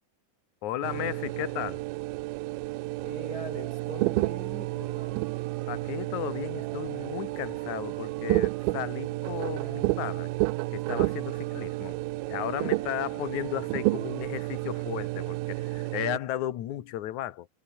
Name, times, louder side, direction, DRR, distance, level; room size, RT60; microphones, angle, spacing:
voice 1, 0.6-1.8 5.7-10.3 10.7-12.0 12.3-17.5, left 13 dB, 60° left, 2.4 m, -35 dB
sound 1, 0.8-16.2, right 21 dB, 80° right, 2.3 m, -31 dB
sound 2, 2.9-14.9, right 8 dB, 50° right, 3.2 m, -51 dB
voice 2, 3.0-5.4, right 2 dB, 25° right, 2.9 m, -41 dB
omnidirectional pair, 4.5 m